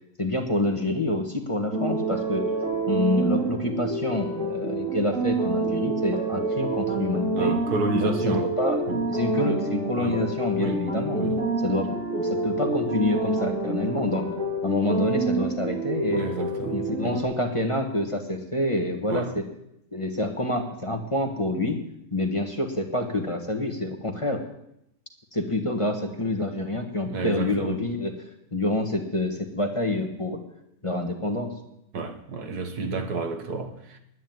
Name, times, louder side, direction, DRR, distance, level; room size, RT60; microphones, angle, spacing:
voice 1, 0.2-2.4 2.9-7.6 7.9-8.8 9.1-11.2 11.6-14.3 14.6-16.3 16.7-19.4 19.9-21.8 22.1-24.4 25.3-28.1 28.5-30.4 30.8-31.5, left 1 dB, 20° left, 3 dB, 1.4 m, -27 dB
sound 1, 1.7-17.2, right 2 dB, 55° right, 2.8 m, -28 dB
voice 2, 7.3-8.5 8.9-9.0 10.0-10.2 10.6-10.8 11.2-11.4 16.2-17.2 19.1-19.3 27.1-27.8 31.9-34.0, right 3 dB, 80° right, 6 dB, 1.9 m, -30 dB
10.5 x 9.6 x 9.2 m, 0.79 s
omnidirectional pair, 1.6 m